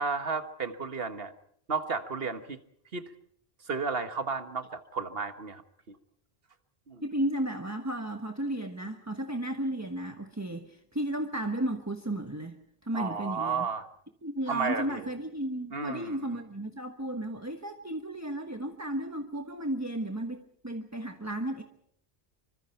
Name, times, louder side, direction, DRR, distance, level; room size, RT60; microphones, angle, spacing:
voice 1, 0.0-1.3 1.7-2.6 2.9-3.1 3.7-5.6 5.9-6.0 6.9-7.0 12.9-13.9 14.5-15.1 15.7-16.2, right 4 dB, 70° right, 9 dB, 1.7 m, -33 dB
voice 2, 7.0-12.6 12.8-13.6 14.2-21.6, right 1 dB, 15° right, 5 dB, 1.3 m, -34 dB
26.5 x 24.5 x 4.5 m, 0.67 s
omnidirectional pair, 1.0 m